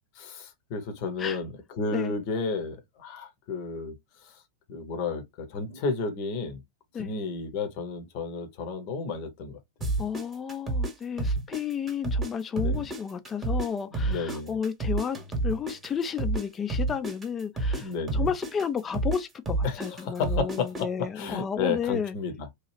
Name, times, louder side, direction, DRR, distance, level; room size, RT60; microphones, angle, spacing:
voice 1, 0.2-3.9 4.7-6.6 7.0-9.6 12.5-12.8 13.9-14.6 17.7-18.3 19.6-22.5, left 4 dB, 45° left, 0.8 m, -32 dB
sound 1, 9.8-12.3 12.6-16.4 16.7-20.8, right 2 dB, 20° right, 1.0 m, -29 dB
voice 2, 10.0-15.2 15.4-22.1, left 7 dB, 20° left, 0.5 m, -32 dB
3.0 x 2.3 x 3.1 m
figure-of-eight pair, 90°, 0 cm